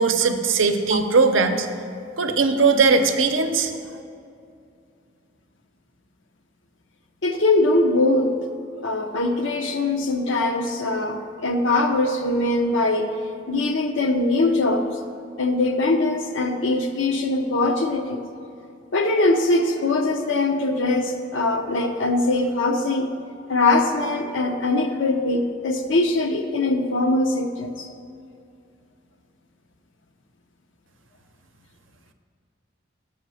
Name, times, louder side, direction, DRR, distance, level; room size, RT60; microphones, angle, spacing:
voice 1, 0.0-1.7 2.2-3.7, right 4 dB, 80° right, 7 dB, 0.6 m, -19 dB
voice 2, 0.9-1.3 7.2-8.3 8.8-13.1 13.5-14.9 15.4-18.2 18.9-23.1 23.5-27.9, left 2 dB, 80° left, 5 dB, 0.7 m, -22 dB
7.2 x 5.6 x 6.2 m, 2.4 s
head